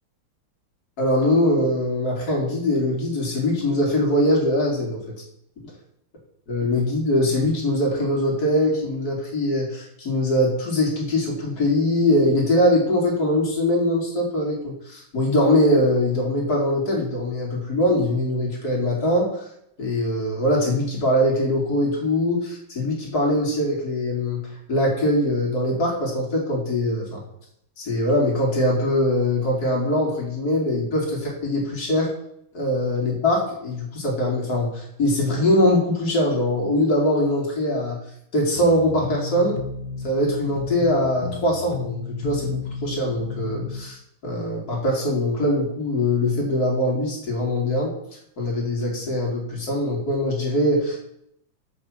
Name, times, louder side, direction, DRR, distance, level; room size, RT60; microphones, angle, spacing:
voice 1, 1.0-5.0 6.5-19.4 19.8-24.4 24.7-27.2 27.8-32.1 32.5-38.0 38.3-39.6 40.0-44.0 44.2-47.9 48.4-51.0, left 1 dB, 45° left, -2 dB, 3.0 m, -22 dB
sound 1, 38.5-43.9, left 4 dB, 70° left, 1.6 m, -33 dB
6.2 x 6.1 x 7.2 m, 0.73 s
omnidirectional pair, 2.3 m